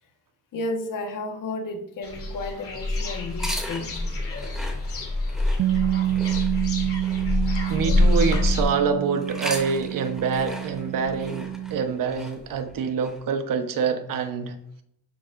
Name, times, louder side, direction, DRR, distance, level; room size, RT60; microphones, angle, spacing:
voice 1, 0.5-4.0, left 2 dB, 70° left, 4 dB, 1.6 m, -32 dB
sound 1, 2.0-8.6, left 2 dB, 40° left, 3.1 m, -26 dB
sound 2, 3.3-8.7 9.2-13.2, equal, ahead, 2.7 m, -39 dB
Bass guitar, 5.6-11.8, right 12 dB, 50° right, 0.5 m, -28 dB
voice 2, 7.7-14.6, right 6 dB, 70° right, 7 dB, 1.2 m, -26 dB
12.0 x 7.3 x 2.7 m, 0.72 s
cardioid pair, 100°, 34 cm